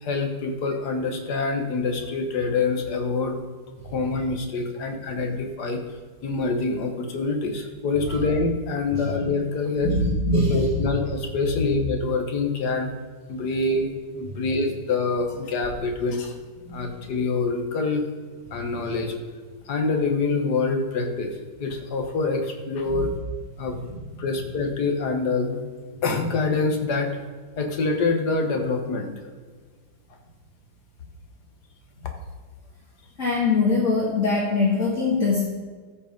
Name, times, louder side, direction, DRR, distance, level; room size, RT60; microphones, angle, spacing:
voice 1, 0.0-3.4 3.8-5.8 6.2-9.9 10.3-12.9 13.3-16.4 16.7-18.1 18.5-19.2 19.7-23.1 23.6-23.8 24.2-25.6 26.0-27.1 27.6-29.1, left 3 dB, 60° left, 4 dB, 1.7 m, -25 dB
voice 2, 9.8-10.6 14.3-14.4 16.6-16.9 22.9-23.0 33.2-35.4, left 3 dB, 45° left, -5 dB, 1.8 m, -23 dB
13.5 x 5.2 x 5.2 m, 1.5 s
omnidirectional pair, 2.0 m